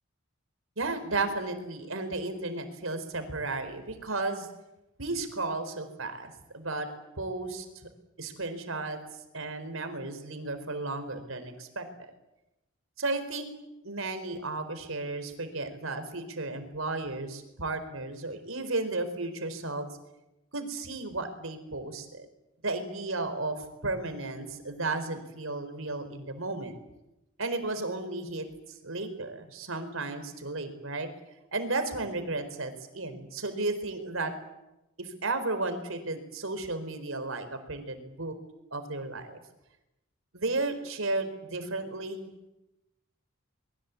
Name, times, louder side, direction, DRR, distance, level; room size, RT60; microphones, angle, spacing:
voice 1, 0.8-4.5 5.0-6.9 7.2-7.7 8.2-9.0 9.3-11.9 13.0-13.5 13.8-19.9 20.5-22.3 22.6-26.8 27.4-31.1 31.5-34.3 35.0-38.3 38.7-39.4 40.3-42.3, right 2 dB, 75° right, 8 dB, 4.4 m, -34 dB
24.5 x 22.0 x 8.5 m, 0.93 s
head